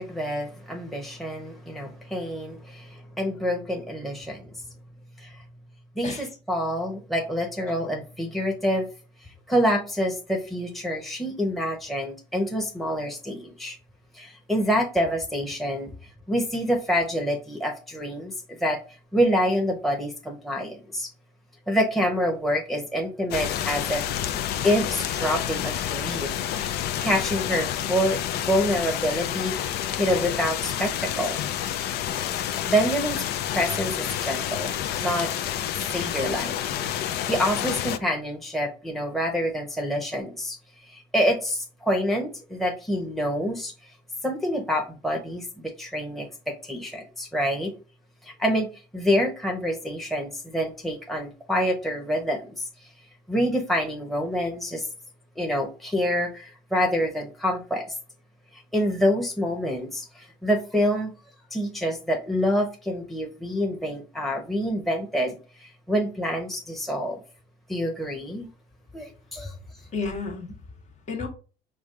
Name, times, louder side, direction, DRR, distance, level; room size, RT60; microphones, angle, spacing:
voice 1, 0.0-4.5 5.2-5.4 6.0-8.9 9.5-13.8 14.1-15.9 16.3-18.8 19.1-21.1 21.7-24.0 24.6-26.3 26.7-31.4 32.4-33.2 33.5-34.7 35.0-35.3 35.9-37.0 37.3-40.6 40.9-43.7 44.2-47.7 48.2-52.7 53.3-54.9 55.4-57.9 58.5-61.1 61.5-67.2 67.7-68.5 68.9-69.5, equal, ahead, 0.9 m, -27 dB
sound 1, 23.3-38.0, left 10 dB, 75° left, 0.5 m, -29 dB
voice 2, 69.4-71.3, left 4 dB, 45° left, 1.4 m, -34 dB
5.1 x 2.4 x 3.7 m
cardioid pair, 110°, 17 cm